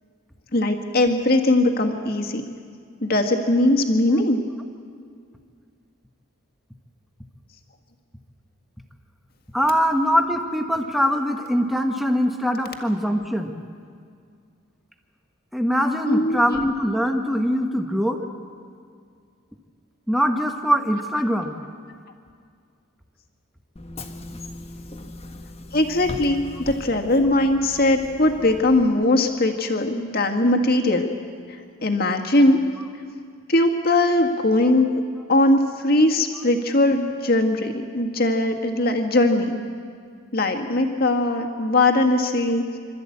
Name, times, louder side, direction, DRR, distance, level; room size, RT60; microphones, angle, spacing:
voice 1, 0.5-2.4 3.0-4.4 16.0-16.6 25.7-31.1 31.8-32.6 33.5-34.9 35.3-39.6 40.3-42.6, left 1 dB, 45° left, 3 dB, 1.8 m, -20 dB
voice 2, 9.5-13.5 15.5-18.2 20.1-21.5, equal, ahead, 4 dB, 1.3 m, -22 dB
Bus / Engine, 23.8-28.9, left 1 dB, 30° left, 1.1 m, -38 dB
27.0 x 13.5 x 8.7 m, 2.2 s
head